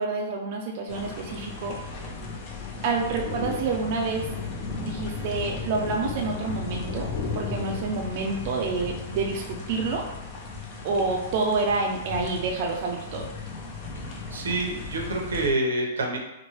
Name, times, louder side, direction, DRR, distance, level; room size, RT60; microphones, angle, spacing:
voice 1, 0.0-1.8 2.8-4.3 4.8-7.1 7.3-10.0 10.8-13.3, right 4 dB, 45° right, 0 dB, 0.4 m, -28 dB
sound 1, 0.9-15.5, left 4 dB, 35° left, 0.5 m, -35 dB
voice 2, 14.3-16.2, right 2 dB, 90° right, 1 dB, 0.7 m, -27 dB
3.0 x 2.2 x 3.0 m, 0.94 s
hypercardioid pair, 145°, 0 cm